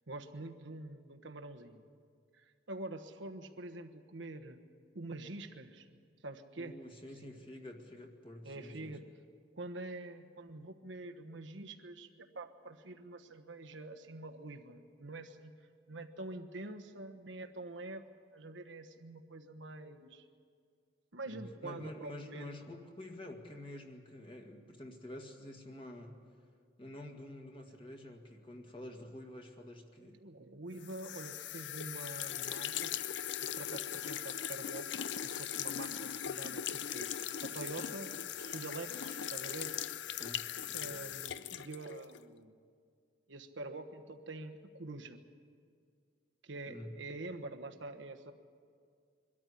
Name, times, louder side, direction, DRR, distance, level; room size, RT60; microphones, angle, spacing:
voice 1, 0.1-1.8 2.3-4.6 4.9-5.9 6.2-6.8 8.4-9.1 9.5-15.5 15.9-18.0 18.3-20.2 21.1-22.5 30.0-32.9 33.5-37.1 37.4-39.8 40.7-42.5 43.3-45.2 46.4-48.3, right 2 dB, 85° right, 5 dB, 1.3 m, -46 dB
voice 2, 6.6-9.0 21.3-26.2 26.8-30.2 40.2-41.0 46.7-46.9, left 1 dB, 30° left, 3 dB, 1.8 m, -48 dB
sound 1, 30.8-42.2, left 10 dB, 75° left, 0.5 m, -40 dB
23.5 x 13.5 x 9.9 m, 2.1 s
head